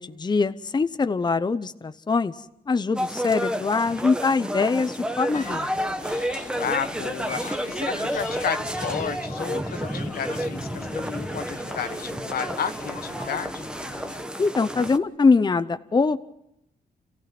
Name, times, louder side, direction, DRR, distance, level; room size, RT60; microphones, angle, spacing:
voice 1, 0.0-5.7 14.4-16.2, left 4 dB, 25° left, 12 dB, 0.8 m, -23 dB
sound 1, 2.9-15.0, equal, 5° right, 1.1 m, -30 dB
sound 2, 5.3-14.2, left 4 dB, 55° left, 2.0 m, -40 dB
voice 2, 6.6-13.7, left 7 dB, 75° left, 10 dB, 1.2 m, -32 dB
29.0 x 15.5 x 6.0 m, 0.80 s
cardioid pair, 85°, 16 cm